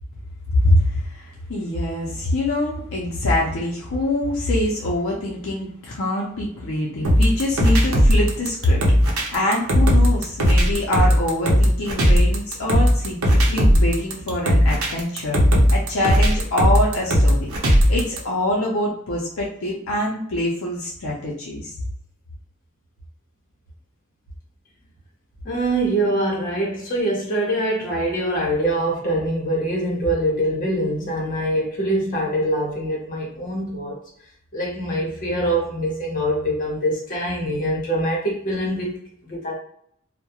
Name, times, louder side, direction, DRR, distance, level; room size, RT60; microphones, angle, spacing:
voice 1, 0.6-15.4 15.7-17.5 17.9-21.8, left 1 dB, 70° left, -3 dB, 0.5 m, -24 dB
sound 1, 7.0-18.2, equal, 85° right, 0.6 m, -17 dB
voice 2, 25.4-34.0 34.5-39.6, right 1 dB, 40° left, -3 dB, 0.9 m, -24 dB
2.3 x 2.1 x 2.8 m, 0.67 s
head